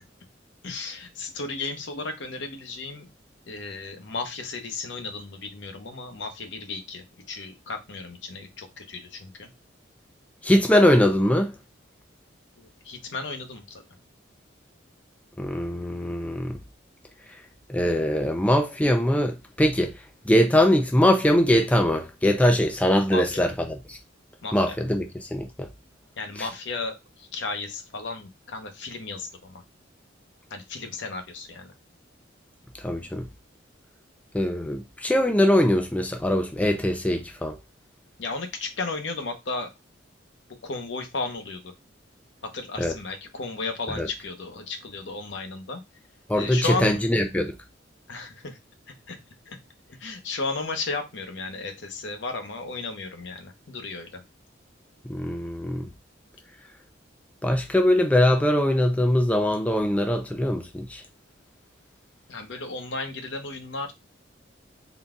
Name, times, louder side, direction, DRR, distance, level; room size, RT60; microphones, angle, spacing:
voice 1, 0.6-3.1 3.5-9.5 12.8-13.8 23.1-23.4 24.4-24.7 26.2-29.6 30.5-31.7 38.2-39.7 40.6-41.6 42.5-45.8 46.3-47.0 48.1-48.6 49.1-49.2 49.5-49.6 50.0-54.2 62.3-63.9, left 3 dB, 70° left, 0.8 m, -34 dB
voice 2, 10.4-11.6 15.4-16.6 17.7-19.9 20.3-24.0 24.5-25.7 26.4-26.5 32.8-33.3 34.3-37.6 42.8-42.9 44.0-44.1 46.3-47.5 55.1-55.9 57.4-61.0, left 1 dB, 10° left, 0.4 m, -22 dB
3.8 x 2.3 x 3.5 m
head